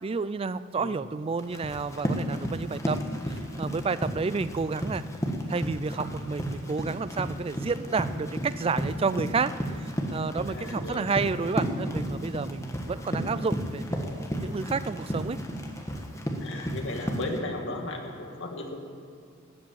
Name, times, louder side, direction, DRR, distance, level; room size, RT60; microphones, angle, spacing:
voice 1, 0.0-5.0 5.5-14.1 14.4-15.4, right 4 dB, 25° right, 15 dB, 0.3 m, -30 dB
Run, 1.4-17.4, equal, 15° left, 1.3 m, -33 dB
voice 2, 10.5-11.1 16.4-18.8, left 2 dB, 60° left, 2 dB, 1.9 m, -36 dB
13.0 x 8.5 x 8.6 m, 2.3 s
head